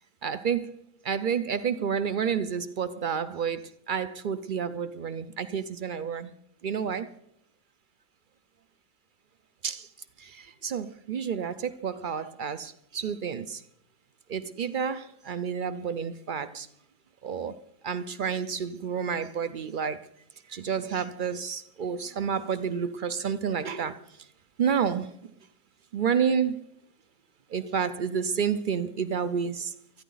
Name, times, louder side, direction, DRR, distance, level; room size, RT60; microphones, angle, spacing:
voice 1, 0.2-0.8 1.0-3.6 3.9-6.3 6.6-7.1 9.6-9.9 10.2-13.6 14.3-16.7 17.2-17.6 17.8-20.1 20.5-24.0 24.6-25.1 25.9-26.6 27.5-29.7, right 7 dB, 65° right, 0.4 m, -30 dB
25.0 x 10.0 x 4.0 m
omnidirectional pair, 1.7 m